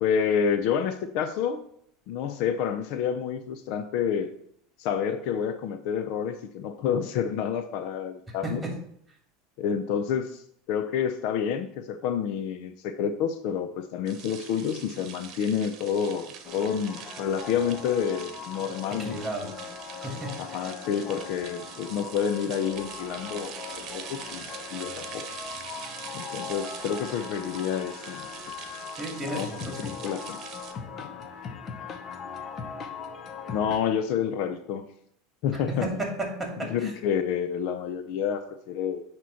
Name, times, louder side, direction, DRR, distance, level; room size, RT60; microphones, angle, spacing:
voice 1, 0.0-1.6 2.1-4.3 4.8-8.6 9.6-19.5 20.4-23.5 23.9-24.4 24.7-25.2 26.1-28.3 29.3-30.4 31.0-31.1 33.5-34.8 35.4-35.9 36.7-39.0, left 7 dB, 65° left, 9 dB, 0.6 m, -29 dB
sound 1, 14.1-30.7, right 7 dB, 45° right, 1.0 m, -43 dB
sound 2, 16.4-33.8, left 6 dB, 40° left, 0.9 m, -40 dB
voice 2, 19.0-19.5 19.9-20.3 29.0-30.0 35.8-36.5 36.8-36.9, right 2 dB, 10° right, 1 dB, 2.4 m, -33 dB
9.1 x 3.0 x 5.6 m, 0.69 s
supercardioid pair, 110°, 0 cm